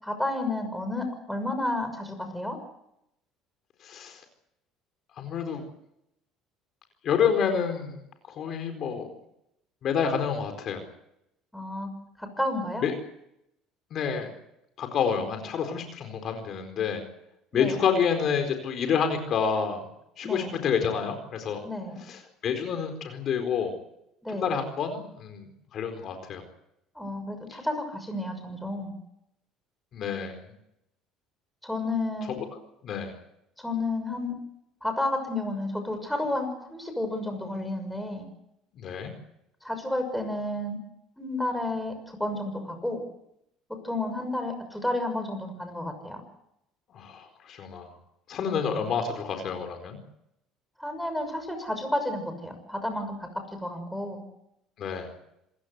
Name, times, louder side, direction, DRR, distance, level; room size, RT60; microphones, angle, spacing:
voice 1, 0.0-2.6 11.5-11.9 12.2-12.9 17.5-17.8 20.2-20.6 21.6-22.0 24.2-24.5 26.9-28.9 31.6-32.4 33.6-34.4 34.8-38.2 39.6-40.8 41.2-43.0 43.8-46.2 48.7-48.9 50.8-53.3 53.6-54.2, left 1 dB, 5° left, 6 dB, 6.4 m, -31 dB
voice 2, 3.8-4.2 5.2-5.6 7.0-8.0 8.4-9.1 9.8-10.8 12.8-12.9 13.9-14.3 14.8-17.0 17.5-19.8 20.2-21.6 22.1-23.7 24.3-25.5 25.7-26.4 27.5-27.6 29.9-30.4 32.3-32.4 32.8-33.1 38.7-39.1 46.9-47.9 48.3-50.0 54.8-55.1, left 7 dB, 50° left, 6 dB, 4.4 m, -28 dB
27.5 x 16.5 x 8.2 m, 0.82 s
supercardioid pair, 105°, 0 cm